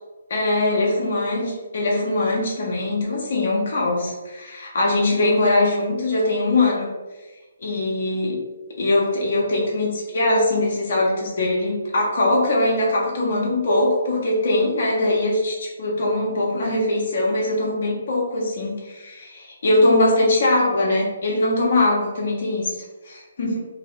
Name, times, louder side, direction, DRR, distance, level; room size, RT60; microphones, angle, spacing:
voice 1, 0.3-6.9 7.6-8.4 8.8-22.8 23.0-23.6, left 2 dB, 55° left, -3 dB, 0.8 m, -21 dB
2.9 x 2.8 x 3.1 m, 1.2 s
figure-of-eight pair, 140°, 0 cm